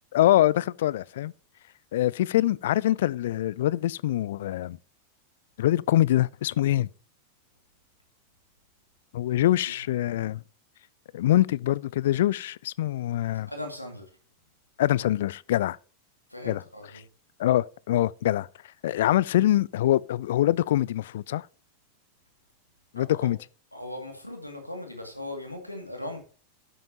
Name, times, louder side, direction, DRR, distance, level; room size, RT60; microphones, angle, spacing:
voice 1, 0.1-1.3 1.9-4.8 5.6-6.9 9.1-10.4 11.1-13.5 14.8-15.8 16.5-16.6 17.4-18.5 18.8-21.5 22.9-23.4, left 13 dB, 55° left, 0.3 m, -24 dB
voice 2, 9.4-9.8 13.5-14.1 16.3-17.1 23.0-23.3 23.7-26.2, left 1 dB, 85° left, 2.3 m, -39 dB
12.0 x 8.5 x 2.9 m
figure-of-eight pair, 90°, 0 cm